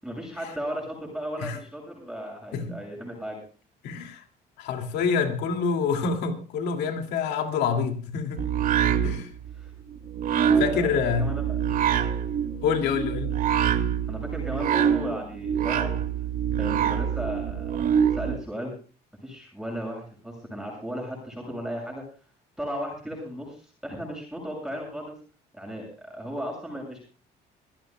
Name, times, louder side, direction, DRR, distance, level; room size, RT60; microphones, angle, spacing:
voice 1, 0.0-3.4 9.0-9.1 9.6-9.7 10.4-10.9 11.2-12.0 14.1-15.9 16.6-17.8 18.1-18.8 19.2-22.0 22.6-25.1 25.5-27.0, equal, 5° right, 7.1 m, -35 dB
voice 2, 3.8-4.2 4.6-8.4 9.0-9.3 10.6-11.3 12.6-13.4, left 6 dB, 85° left, 2.6 m, -27 dB
sound 1, 8.4-18.4, right 8 dB, 55° right, 2.3 m, -25 dB
26.5 x 14.5 x 2.4 m
cardioid pair, 110°, 17 cm